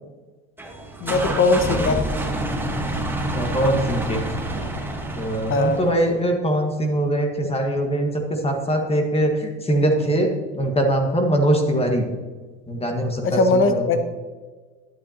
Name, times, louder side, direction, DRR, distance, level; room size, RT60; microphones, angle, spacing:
sound 1, 0.6-6.1, right 1 dB, 5° right, 1.4 m, -27 dB
voice 1, 1.0-2.0 5.5-5.8 13.2-14.0, left 3 dB, 35° left, 8 dB, 1.3 m, -19 dB
voice 2, 3.3-4.2 5.1-10.3 10.5-12.0 12.7-13.9, right 1 dB, 15° left, 3 dB, 1.6 m, -22 dB
12.0 x 9.0 x 2.9 m, 1.4 s
supercardioid pair, 105°, 36 cm